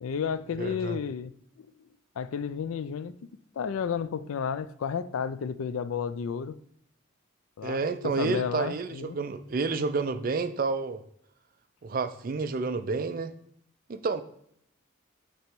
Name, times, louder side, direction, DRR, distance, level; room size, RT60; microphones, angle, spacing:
voice 1, 0.0-1.9 2.2-3.1 3.6-6.6 7.6-9.2, left 6 dB, 80° left, 0.4 m, -32 dB
voice 2, 0.6-1.0 7.6-11.0 11.8-13.3 13.9-14.2, right 4 dB, 45° right, 0.4 m, -30 dB
8.2 x 3.0 x 4.5 m
head